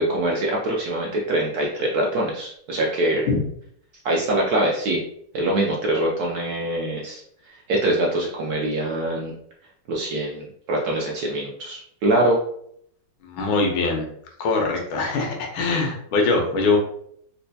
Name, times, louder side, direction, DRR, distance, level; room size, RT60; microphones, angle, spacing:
voice 1, 0.0-3.3 4.0-5.0 5.3-7.2 7.7-9.3 9.9-12.4, right 1 dB, 70° right, -3 dB, 0.9 m, -23 dB
voice 2, 13.2-14.1 14.4-16.8, left 3 dB, 85° left, 1 dB, 1.6 m, -22 dB
4.2 x 2.2 x 2.7 m, 0.67 s
omnidirectional pair, 2.1 m